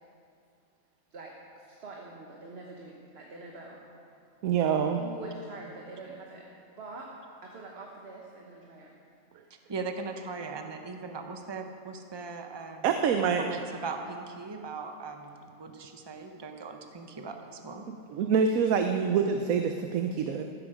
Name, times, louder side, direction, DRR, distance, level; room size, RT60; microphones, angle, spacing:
voice 1, 1.1-3.8 4.8-6.5 6.8-7.1 7.4-8.9, right 3 dB, 50° right, -1 dB, 1.5 m, -45 dB
voice 2, 4.4-5.0 12.8-13.5 18.1-20.4, right 6 dB, 80° right, 5 dB, 1.1 m, -26 dB
voice 3, 9.7-13.0 13.4-17.8, right 4 dB, 20° right, 5 dB, 0.8 m, -39 dB
14.5 x 13.5 x 5.0 m, 2.5 s
omnidirectional pair, 1.5 m